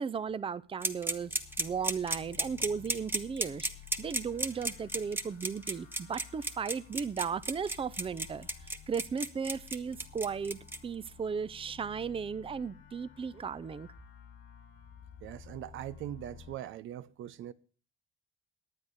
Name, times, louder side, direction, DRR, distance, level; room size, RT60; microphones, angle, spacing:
voice 1, 0.0-3.7 4.0-13.9, right 6 dB, 25° right, 0.5 m, -36 dB
sound 1, 0.7-16.5, left 8 dB, 85° left, 1.9 m, -53 dB
sound 2, 0.8-10.8, right 1 dB, 10° right, 1.1 m, -33 dB
voice 2, 15.2-17.5, right 12 dB, 80° right, 0.6 m, -41 dB
10.5 x 8.7 x 6.4 m
cardioid pair, 90°, 20 cm